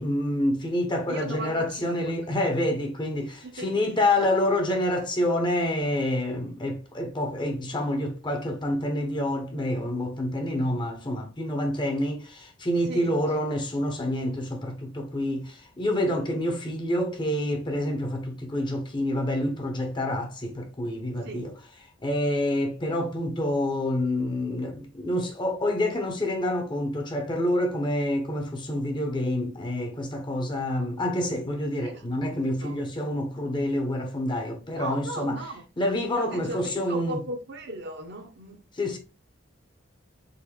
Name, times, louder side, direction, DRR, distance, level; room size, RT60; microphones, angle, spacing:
voice 1, 0.0-21.5 22.0-35.4 35.8-37.2 38.8-39.0, left 1 dB, 25° left, 0.8 m, -27 dB
voice 2, 1.1-2.0 3.6-3.7 4.2-4.3 12.8-13.2 21.2-21.5 31.8-32.0 32.4-32.8 34.7-35.6 36.1-38.6, right 1 dB, 55° right, 0.9 m, -37 dB
4.0 x 3.7 x 3.0 m
head